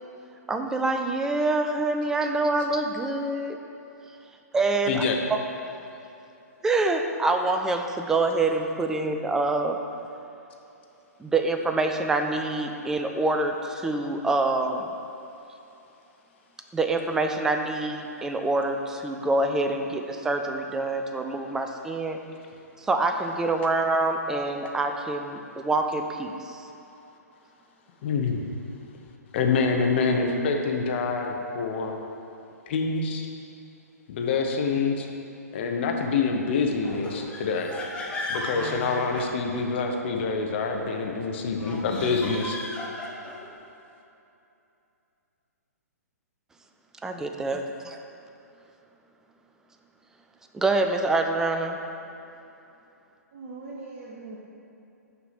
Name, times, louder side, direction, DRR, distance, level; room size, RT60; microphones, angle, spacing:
voice 1, 0.5-3.6 4.5-5.0 6.6-9.8 11.2-14.9 16.7-22.2 22.9-26.3 47.0-48.0 50.5-51.8, right 2 dB, 5° right, 5 dB, 0.3 m, -26 dB
voice 2, 4.9-5.2 28.0-28.5 29.3-32.0 32.7-33.3 34.1-35.1 35.5-37.7 38.3-42.6, left 4 dB, 40° left, 2 dB, 0.8 m, -26 dB
sound 1, 36.8-39.9 41.5-43.5, left 1 dB, 10° left, 0.7 m, -36 dB
voice 3, 53.3-54.4, right 3 dB, 35° right, -5 dB, 0.8 m, -40 dB
6.4 x 4.8 x 5.8 m, 2.8 s
figure-of-eight pair, 120°, 9 cm